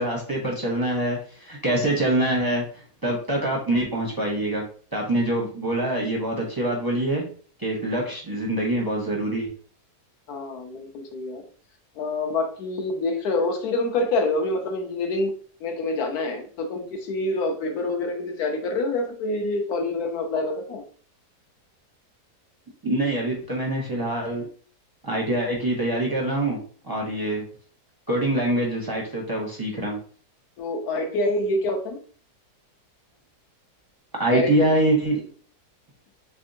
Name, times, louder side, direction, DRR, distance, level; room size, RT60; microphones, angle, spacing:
voice 1, 0.0-2.6 3.0-4.6 4.9-7.2 7.6-9.5 22.8-24.4 25.0-26.6 26.8-27.5 28.1-30.0 34.2-35.2, right 1 dB, 25° right, -3 dB, 0.5 m, -24 dB
voice 2, 10.3-11.4 12.0-15.3 15.6-20.8 30.6-32.0 34.3-34.7, left 2 dB, 70° left, 3 dB, 1.2 m, -26 dB
3.4 x 3.4 x 2.6 m, 0.44 s
omnidirectional pair, 1.7 m